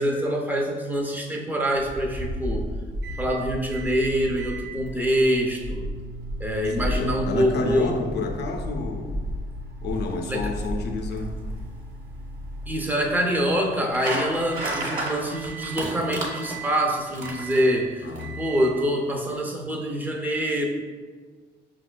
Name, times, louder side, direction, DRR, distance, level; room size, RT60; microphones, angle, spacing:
voice 1, 0.0-2.7 3.2-5.9 6.4-8.0 10.3-10.5 12.7-18.1 18.4-20.6, equal, 10° right, 1 dB, 0.5 m, -25 dB
Wind, 1.8-11.8, equal, 90° right, 1.1 m, -33 dB
sound 1, 3.0-3.3 3.7-4.0 4.4-14.9 15.3-15.9 16.3-16.8 17.2-17.8 18.2-18.7, right 5 dB, 65° right, 0.6 m, -42 dB
voice 2, 6.8-9.2 9.8-11.3 18.0-18.5, left 3 dB, 60° left, 4 dB, 0.5 m, -30 dB
sound 2, 9.9-18.2, right 1 dB, 45° right, 0.9 m, -34 dB
5.3 x 2.3 x 2.2 m, 1.5 s
cardioid pair, 90°, 20 cm